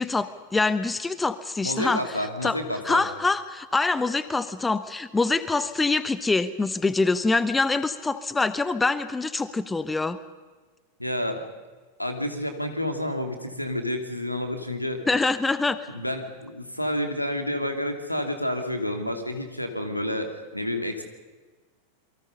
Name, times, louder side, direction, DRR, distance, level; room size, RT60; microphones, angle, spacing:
voice 1, 0.0-2.2 2.4-2.6 2.8-10.2 15.1-15.8, left 3 dB, 10° left, 14 dB, 1.1 m, -25 dB
voice 2, 1.6-3.0 11.0-11.4 12.0-15.0 15.9-21.0, left 1 dB, 90° left, 6 dB, 2.9 m, -29 dB
28.5 x 23.5 x 5.4 m, 1.4 s
figure-of-eight pair, 90°, 0 cm